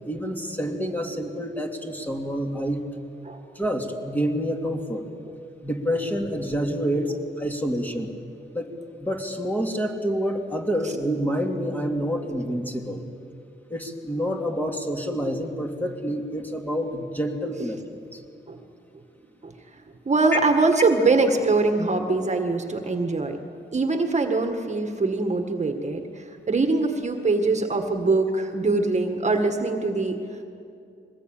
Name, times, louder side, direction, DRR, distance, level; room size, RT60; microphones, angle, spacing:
voice 1, 0.1-2.8 3.5-5.1 5.6-8.1 8.5-8.7 9.0-13.1 13.7-17.8 18.1-18.2, equal, 10° left, 2 dB, 2.7 m, -28 dB
voice 2, 20.1-23.4 23.7-30.2, right 3 dB, 35° right, 5 dB, 1.8 m, -23 dB
23.5 x 19.5 x 9.0 m, 2.5 s
cardioid pair, 100°, 20 cm